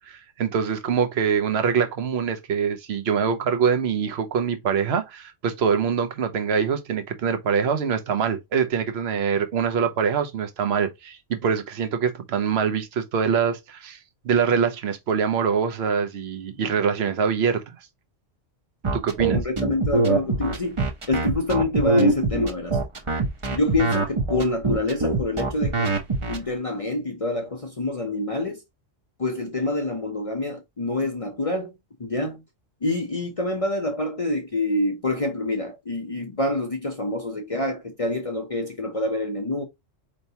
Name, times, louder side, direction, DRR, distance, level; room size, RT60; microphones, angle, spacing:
voice 1, 0.1-14.0 14.2-17.8 18.9-19.4, right 6 dB, 60° right, 1.0 m, -24 dB
sound 1, 18.8-26.4, right 3 dB, 30° right, 0.8 m, -23 dB
voice 2, 19.3-20.8 21.1-22.8 23.5-25.9 26.3-28.6 29.2-31.7 32.0-32.4 32.8-39.6, left 2 dB, 35° left, 0.7 m, -26 dB
4.5 x 3.2 x 2.8 m
omnidirectional pair, 1.3 m